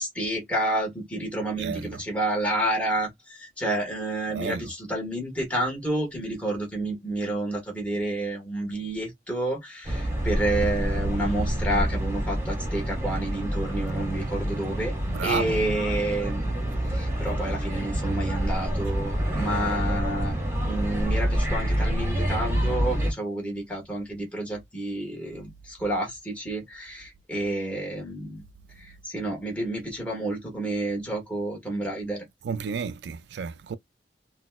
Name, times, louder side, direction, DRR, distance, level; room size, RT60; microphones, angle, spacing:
voice 1, 0.0-3.1 3.4-14.9 15.2-16.5 16.9-20.4 20.6-28.4 29.1-32.2, right 1 dB, 10° left, 1.3 m, -29 dB
voice 2, 1.6-2.0 4.3-4.7 15.1-15.6 32.4-33.8, right 6 dB, 65° right, 0.3 m, -31 dB
sound 1, 9.8-23.1, right 1 dB, 15° right, 1.1 m, -27 dB
3.9 x 2.2 x 2.2 m
head